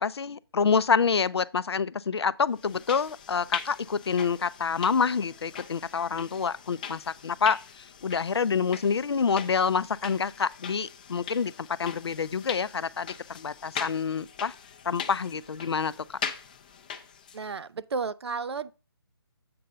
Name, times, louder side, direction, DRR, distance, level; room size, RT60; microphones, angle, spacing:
voice 1, 0.0-14.5 14.9-16.2, left 6 dB, 75° left, 0.5 m, -27 dB
sound 1, 2.6-17.5, left 7 dB, 20° left, 0.4 m, -41 dB
voice 2, 17.3-18.7, right 4 dB, 80° right, 0.5 m, -32 dB
7.7 x 4.0 x 5.5 m
hypercardioid pair, 160°, 14 cm